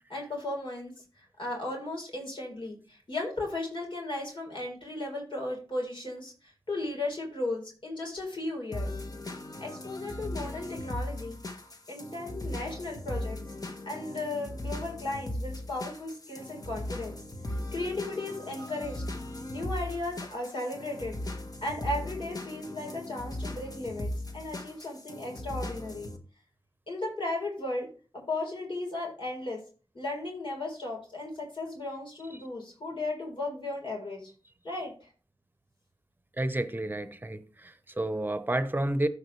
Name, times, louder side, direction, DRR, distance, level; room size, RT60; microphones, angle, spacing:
voice 1, 0.1-8.9 9.6-11.4 11.9-13.4 13.9-17.2 17.5-19.0 19.5-21.2 21.6-26.1 26.9-27.9 28.1-29.6 29.9-34.3 34.6-35.1, left 2 dB, 65° left, 4.2 m, -35 dB
sound 1, 8.7-26.2, left 1 dB, 45° left, 1.4 m, -38 dB
voice 2, 36.4-39.1, right 1 dB, 20° right, 0.9 m, -30 dB
14.0 x 4.9 x 3.2 m
cardioid pair, 45°, 9 cm